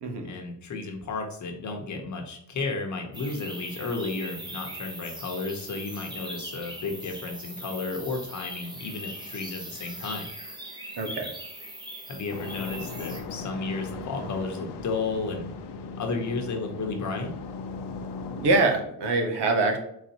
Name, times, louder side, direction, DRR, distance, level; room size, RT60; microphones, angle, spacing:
voice 1, 0.2-10.3 12.1-15.5 16.0-17.3, left 3 dB, 45° left, 3 dB, 1.0 m, -33 dB
sound 1, 3.1-13.2, right 1 dB, 10° right, 0.7 m, -40 dB
voice 2, 11.0-11.3 18.4-19.8, right 3 dB, 85° right, 4 dB, 1.2 m, -24 dB
sound 2, 12.3-18.6, left 4 dB, 80° left, 0.8 m, -38 dB
4.4 x 4.1 x 2.9 m, 0.73 s
wide cardioid pair, 180°, 40 cm